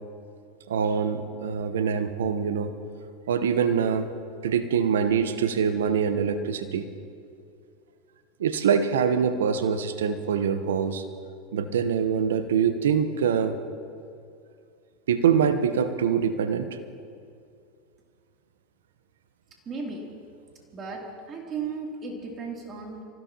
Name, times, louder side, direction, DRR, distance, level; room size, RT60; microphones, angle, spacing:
voice 1, 0.7-2.7 3.3-4.1 4.4-6.9 8.4-11.0 11.5-13.6 15.1-16.7, right 7 dB, 75° right, 9 dB, 1.0 m, -24 dB
voice 2, 19.6-20.1 20.7-23.0, right 4 dB, 35° right, 0 dB, 3.1 m, -35 dB
24.5 x 16.0 x 3.0 m, 2.4 s
hypercardioid pair, 90°, 0 cm